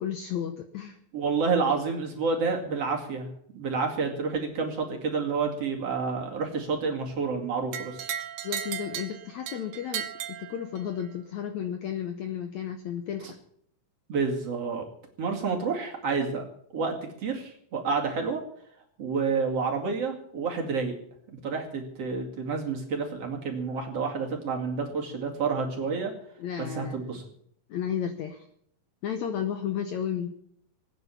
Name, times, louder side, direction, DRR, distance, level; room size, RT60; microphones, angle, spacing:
voice 1, 0.0-1.0 8.4-10.1 10.4-13.3 26.4-27.1 27.7-28.5 29.0-30.3, left 9 dB, 70° left, 7 dB, 1.8 m, -33 dB
voice 2, 1.1-3.3 3.5-8.1 14.1-14.8 15.2-16.4 16.7-18.4 19.0-20.9 21.3-26.1 26.6-27.2, right 4 dB, 45° right, 1 dB, 3.1 m, -29 dB
sound 1, 7.7-11.1, right 10 dB, 75° right, 2.8 m, -36 dB
19.0 x 9.4 x 7.1 m, 0.69 s
omnidirectional pair, 4.2 m